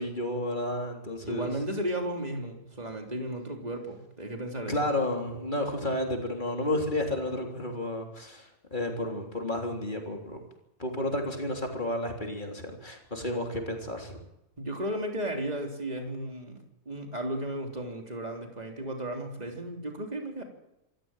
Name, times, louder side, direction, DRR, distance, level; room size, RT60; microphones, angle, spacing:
voice 1, 0.0-1.5 4.7-10.4 10.8-14.2, left 1 dB, 35° left, 2 dB, 3.8 m, -31 dB
voice 2, 1.2-4.9 14.6-20.4, right 1 dB, 30° right, 3 dB, 3.6 m, -34 dB
26.5 x 14.0 x 9.0 m, 0.89 s
omnidirectional pair, 1.3 m